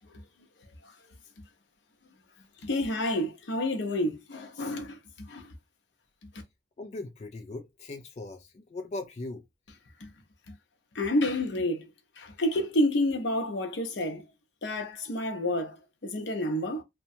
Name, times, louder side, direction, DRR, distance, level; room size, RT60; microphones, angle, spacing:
voice 1, 2.6-5.5 10.0-10.1 10.5-10.6 10.9-11.9 12.2-14.2 14.6-16.8, left 1 dB, 80° left, 0.7 m, -29 dB
voice 2, 6.8-9.4, left 2 dB, 35° left, 0.3 m, -39 dB
2.8 x 2.2 x 2.5 m
head